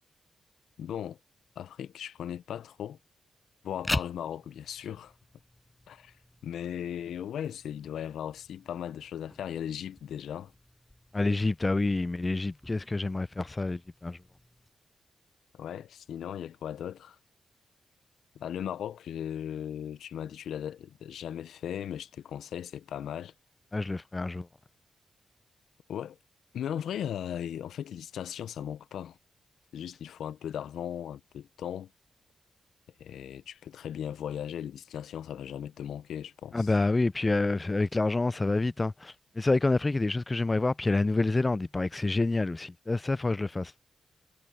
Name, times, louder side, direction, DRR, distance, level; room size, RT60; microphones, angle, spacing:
voice 1, 0.8-1.2 1.6-3.0 3.6-5.1 5.9-6.1 6.4-10.5 15.5-17.2 18.3-23.3 25.9-26.2 26.5-29.2 29.7-31.9 33.0-36.7, left 9 dB, 85° left, 0.7 m, -37 dB
sound 1, 3.7-14.7, left 1 dB, 15° left, 5.0 m, -43 dB
voice 2, 11.1-14.2 23.7-24.5 36.5-43.7, left 2 dB, 30° left, 0.4 m, -28 dB
supercardioid pair, 50°, 0 cm